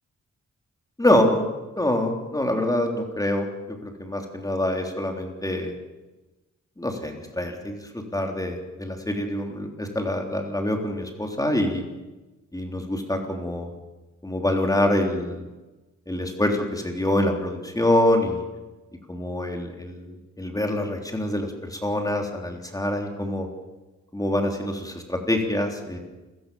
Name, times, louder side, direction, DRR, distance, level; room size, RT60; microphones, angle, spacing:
voice 1, 1.0-1.5 1.8-3.5 3.8-5.7 6.8-11.9 12.5-13.7 14.2-15.4 16.1-18.4 19.1-23.5 24.1-26.0, left 1 dB, 10° left, 3 dB, 3.6 m, -25 dB
29.0 x 17.0 x 7.1 m, 1.1 s
wide cardioid pair, 110°, 29 cm